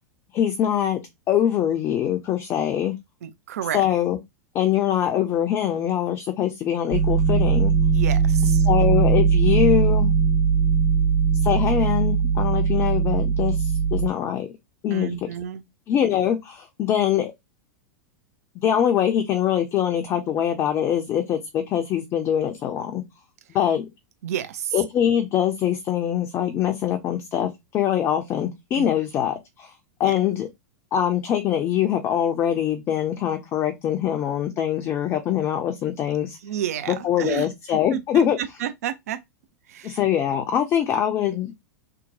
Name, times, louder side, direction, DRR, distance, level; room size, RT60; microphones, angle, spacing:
voice 1, 0.3-1.0 1.3-3.0 3.7-4.2 4.5-7.7 8.7-10.1 11.4-14.5 14.8-15.1 15.9-17.3 18.6-23.0 23.5-23.9 24.7-29.7 30.0-30.5 30.9-36.4 36.9-38.4 39.8-41.5, left 10 dB, 30° left, 0.5 m, -23 dB
voice 2, 3.2-3.8 7.9-8.7 14.9-15.7 24.2-24.8 28.8-28.9 30.0-30.1 36.4-39.2 39.7-40.0, right 9 dB, 60° right, 0.5 m, -31 dB
sound 1, 6.9-14.1, right 5 dB, 45° right, 1.3 m, -20 dB
2.8 x 2.1 x 2.6 m
figure-of-eight pair, 95°, 9 cm